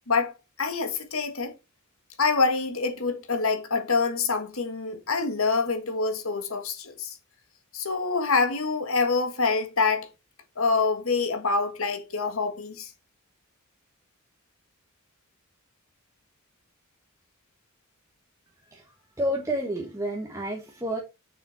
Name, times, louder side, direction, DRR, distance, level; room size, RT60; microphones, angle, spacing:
voice 1, 0.6-1.5 2.2-7.2 7.7-10.1 10.6-12.9, left 4 dB, 75° left, 1.8 m, -26 dB
voice 2, 18.7-21.0, equal, 15° right, 1.3 m, -30 dB
6.8 x 6.8 x 4.3 m
head